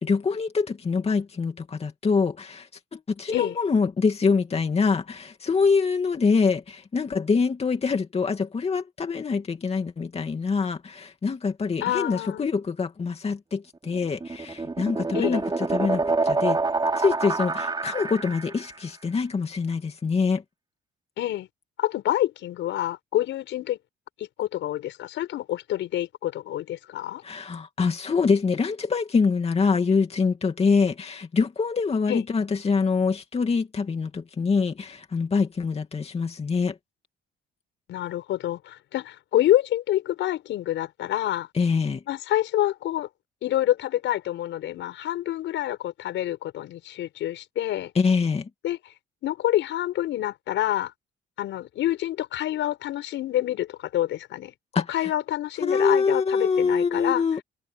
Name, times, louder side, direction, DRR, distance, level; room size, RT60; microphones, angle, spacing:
voice 1, 0.0-16.6 17.0-20.4 27.2-36.8 41.5-42.0 47.9-48.5 54.7-55.1 55.6-57.4, left 5 dB, 30° left, 2.5 m, -25 dB
voice 2, 11.8-12.4 15.1-15.4 21.2-21.5 21.8-23.8 24.2-27.2 32.1-32.2 37.9-41.5 42.1-43.1 43.4-47.9 48.6-48.8 49.2-50.9 51.4-57.2, left 13 dB, 75° left, 5.9 m, -27 dB
sound 1, 13.9-18.7, right 3 dB, 20° right, 5.8 m, -27 dB
cardioid pair, 100°, 20 cm